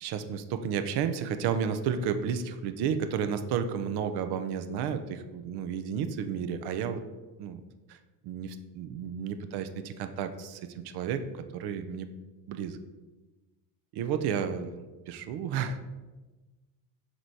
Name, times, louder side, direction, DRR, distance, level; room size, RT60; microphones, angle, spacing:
voice 1, 0.0-7.0 7.4-7.6 7.9-8.0 8.2-12.1 12.5-12.8 13.9-15.8, right 7 dB, 60° right, 9 dB, 0.7 m, -32 dB
6.5 x 3.1 x 4.6 m, 1.2 s
supercardioid pair, 110°, 45 cm